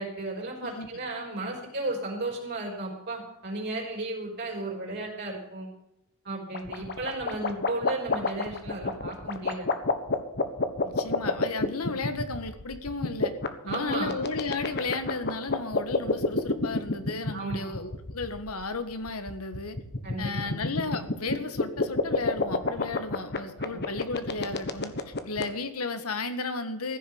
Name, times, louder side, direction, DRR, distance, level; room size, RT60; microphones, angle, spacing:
voice 1, 0.0-5.7 6.2-9.7 13.7-14.1 17.3-17.7 20.0-20.5 23.6-23.8, right 2 dB, 50° right, -1 dB, 4.6 m, -34 dB
sound 1, 6.5-25.4, left 3 dB, 50° left, 1.3 m, -28 dB
voice 2, 10.8-13.3 13.6-19.8 20.2-27.0, left 3 dB, 70° left, 9 dB, 1.6 m, -34 dB
15.0 x 6.8 x 9.4 m, 0.86 s
head